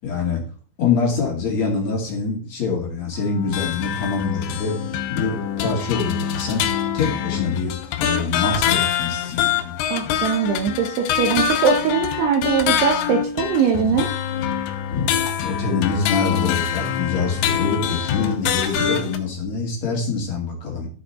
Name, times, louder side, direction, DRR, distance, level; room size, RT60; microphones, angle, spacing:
voice 1, 0.0-0.4 0.8-4.7 5.1-6.6 6.9-7.7 8.0-9.8 14.9-15.1 15.4-20.9, left 4 dB, 45° left, -1 dB, 2.5 m, -25 dB
sound 1, 3.1-19.2, left 9 dB, 80° left, 2.7 m, -25 dB
voice 2, 9.9-14.1, right 6 dB, 75° right, 3 dB, 2.6 m, -21 dB
13.0 x 5.0 x 4.2 m, 0.41 s
omnidirectional pair, 5.8 m